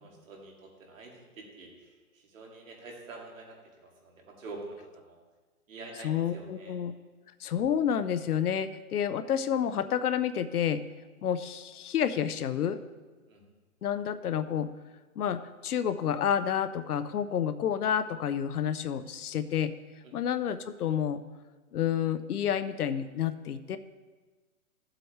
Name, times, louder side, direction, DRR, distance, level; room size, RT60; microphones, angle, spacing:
voice 1, 0.0-5.2 5.7-6.7 13.3-13.4 20.0-20.1, right 3 dB, 60° right, -1 dB, 2.5 m, -47 dB
voice 2, 6.0-6.9 7.4-10.8 11.2-12.8 13.8-14.7 15.2-19.7 20.1-21.2 21.7-23.8, left 9 dB, 85° left, 12 dB, 0.8 m, -29 dB
14.0 x 7.6 x 3.2 m, 1.3 s
hypercardioid pair, 165°, 44 cm